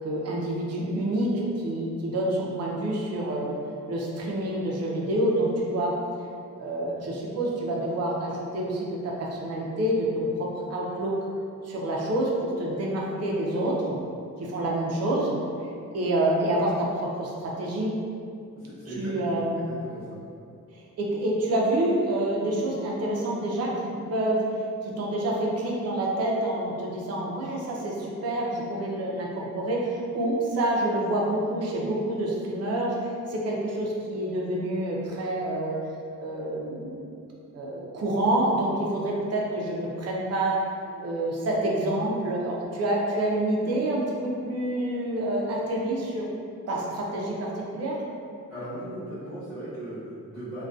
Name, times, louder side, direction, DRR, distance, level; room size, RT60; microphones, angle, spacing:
voice 1, 0.0-3.6 3.9-5.9 6.6-11.1 11.6-14.0 14.4-15.3 15.9-17.9 19.0-19.6 21.0-24.4 24.8-32.9 33.3-35.8 36.2-37.0 37.5-40.6 41.0-46.2 46.7-48.0, right 1 dB, 50° right, -3 dB, 0.4 m, -27 dB
voice 2, 18.5-19.1 19.5-20.3 48.5-50.6, right 1 dB, ahead, -18 dB, 0.8 m, -38 dB
2.5 x 2.2 x 2.2 m, 2.4 s
wide cardioid pair, 170°, 33 cm